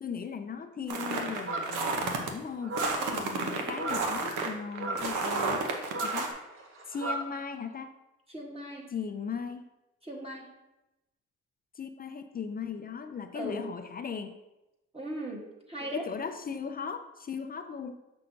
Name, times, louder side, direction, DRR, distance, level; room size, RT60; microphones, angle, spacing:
voice 1, 0.0-5.7 6.0-6.3 6.9-7.9 8.9-9.7 11.8-14.4 15.8-18.0, left 6 dB, 30° left, 9 dB, 0.4 m, -38 dB
sound 1, 0.9-2.3 2.7-6.3, right 3 dB, 85° right, 0.9 m, -31 dB
sound 2, 1.5-1.9 2.6-3.1 3.7-4.1 4.7-5.1 5.9-7.3, right 2 dB, 45° right, 1.2 m, -35 dB
voice 2, 3.0-3.3 8.3-8.9 10.0-10.5 13.3-13.6 14.9-16.1, right 1 dB, 20° right, -2 dB, 1.3 m, -38 dB
6.3 x 5.6 x 2.7 m, 0.97 s
cardioid pair, 90°, 30 cm